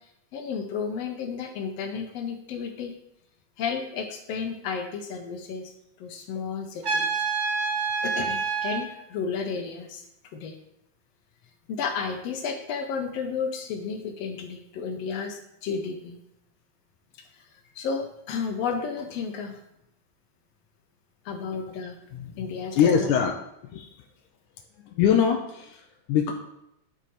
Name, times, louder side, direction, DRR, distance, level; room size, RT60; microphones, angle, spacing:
voice 1, 0.3-2.9 3.6-5.7 6.0-7.1 8.0-10.0 10.3-10.6 11.7-16.2 17.7-19.5 21.2-23.1 23.8-23.9, left 5 dB, 70° left, 5 dB, 1.6 m, -32 dB
Trumpet, 6.8-8.9, right 5 dB, 65° right, 0.7 m, -27 dB
voice 2, 22.7-23.3 23.7-23.8 24.9-26.3, left 8 dB, 85° left, 2 dB, 2.1 m, -22 dB
11.0 x 4.7 x 4.2 m, 0.81 s
omnidirectional pair, 3.6 m